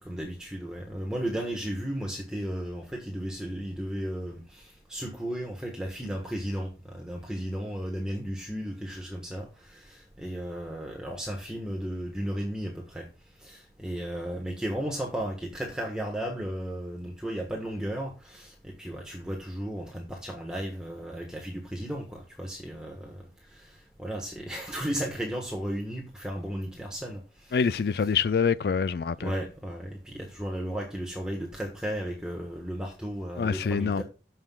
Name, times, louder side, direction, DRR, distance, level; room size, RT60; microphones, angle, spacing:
voice 1, 0.0-13.1 13.4-27.6 28.0-28.1 29.2-34.0, equal, 5° right, 1.3 m, -35 dB
voice 2, 27.5-29.3 33.4-34.0, left 6 dB, 65° left, 0.4 m, -25 dB
15.0 x 5.7 x 2.3 m
head